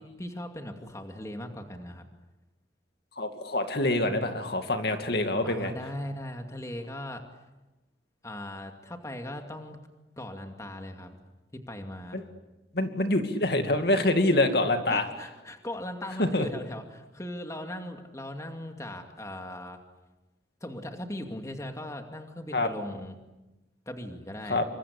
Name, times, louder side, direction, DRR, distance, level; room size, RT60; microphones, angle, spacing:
voice 1, 0.0-2.1 5.4-7.2 8.2-9.8 10.2-11.2 11.5-12.2 14.9-19.8 20.6-23.2 23.9-24.6, left 1 dB, 15° left, 4 dB, 2.4 m, -39 dB
voice 2, 3.2-5.7 12.1-12.2 12.7-15.1 16.2-16.5 22.5-22.7 24.5-24.6, left 1 dB, 60° left, 6 dB, 2.5 m, -25 dB
28.0 x 25.0 x 8.5 m, 1.1 s
head